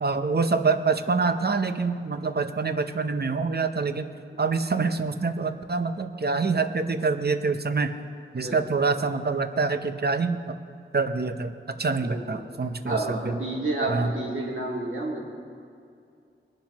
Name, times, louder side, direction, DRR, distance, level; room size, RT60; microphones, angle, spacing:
voice 1, 0.0-4.1 4.4-8.0 8.3-10.6 10.9-13.4 13.9-14.1, right 4 dB, 55° right, 9 dB, 0.7 m, -26 dB
voice 2, 8.4-8.9 12.0-12.5 12.8-15.2, right 2 dB, 85° right, -2 dB, 2.3 m, -30 dB
20.0 x 11.5 x 3.0 m, 2.5 s
wide cardioid pair, 60°, 20 cm